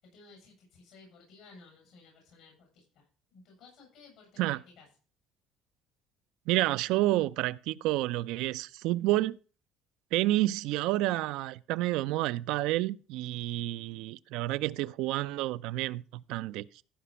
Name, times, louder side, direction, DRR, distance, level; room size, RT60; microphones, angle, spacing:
voice 1, 0.0-3.1 3.3-4.9, left 3 dB, 80° left, 7.2 m, -56 dB
voice 2, 6.5-9.4 10.1-16.8, right 16 dB, 80° right, 0.5 m, -29 dB
15.0 x 5.1 x 5.6 m
supercardioid pair, 90°, 0 cm